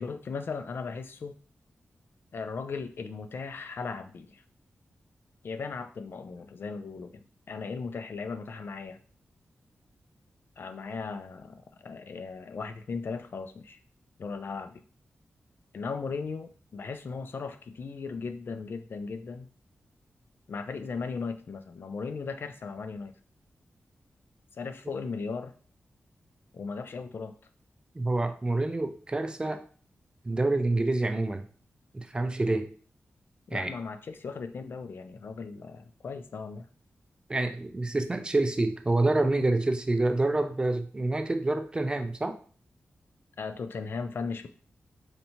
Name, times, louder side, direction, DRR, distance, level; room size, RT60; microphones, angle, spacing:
voice 1, 0.0-1.3 2.3-4.4 5.4-9.0 10.6-13.8 14.2-14.8 15.7-19.5 20.5-23.1 24.5-25.5 26.5-27.3 33.5-36.7 43.4-44.5, left 4 dB, 55° left, 9 dB, 0.3 m, -37 dB
voice 2, 28.0-29.6 30.2-31.4 31.9-32.7 33.5-33.7 37.3-42.4, right 2 dB, 20° right, 7 dB, 0.4 m, -27 dB
4.4 x 2.7 x 2.8 m, 0.42 s
wide cardioid pair, 120°, 4 cm